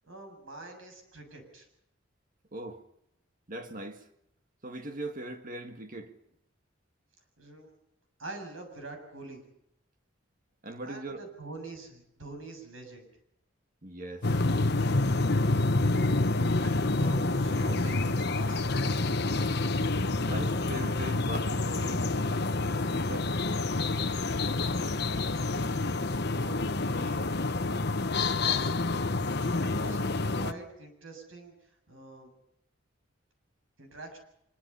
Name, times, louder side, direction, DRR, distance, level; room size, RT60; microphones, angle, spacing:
voice 1, 0.1-1.7 7.4-7.7 8.2-9.4 10.8-13.1 16.6-18.8 26.3-26.6 26.9-27.3 28.4-29.0 29.6-30.1 30.3-31.5 31.9-32.3 33.8-34.2, right 3 dB, 90° right, 7.4 m, -44 dB
voice 2, 2.5-2.8 3.5-4.1 4.6-6.1 10.6-11.3 13.8-14.4 20.3-22.1 22.9-23.4, right 1 dB, 45° right, 1.9 m, -40 dB
sound 1, 14.2-30.5, left 2 dB, 55° left, 1.1 m, -28 dB
25.0 x 23.0 x 5.7 m
head